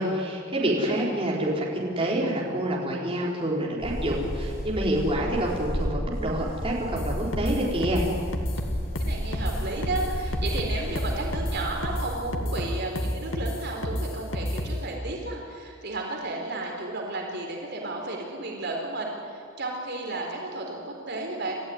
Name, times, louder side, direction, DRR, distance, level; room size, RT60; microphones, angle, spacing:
voice 1, 0.0-8.0, right 1 dB, 25° right, -4 dB, 4.6 m, -27 dB
voice 2, 0.6-1.1 8.6-21.6, right 2 dB, 55° right, 0 dB, 4.2 m, -33 dB
sound 1, 3.8-12.1, equal, 45° left, 3.2 m, -33 dB
sound 2, 7.0-14.9, left 1 dB, 80° left, 2.1 m, -30 dB
29.0 x 14.5 x 9.8 m, 2.2 s
head